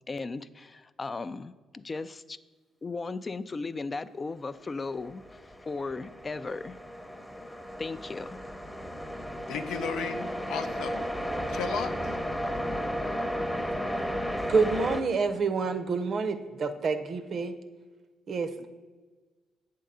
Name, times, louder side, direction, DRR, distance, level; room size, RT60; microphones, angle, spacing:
voice 1, 0.1-2.4 2.8-6.8 7.8-8.4, left 3 dB, 30° left, 13 dB, 0.3 m, -36 dB
sound 1, 4.8-15.0, equal, ahead, 0.7 m, -34 dB
voice 2, 9.5-11.0 11.5-11.9 18.6-18.7, left 6 dB, 80° left, 7 dB, 0.6 m, -34 dB
voice 3, 14.5-17.5 18.3-18.7, right 4 dB, 55° right, 10 dB, 0.6 m, -28 dB
8.3 x 3.7 x 6.7 m, 1.3 s
cardioid pair, 80°, 0 cm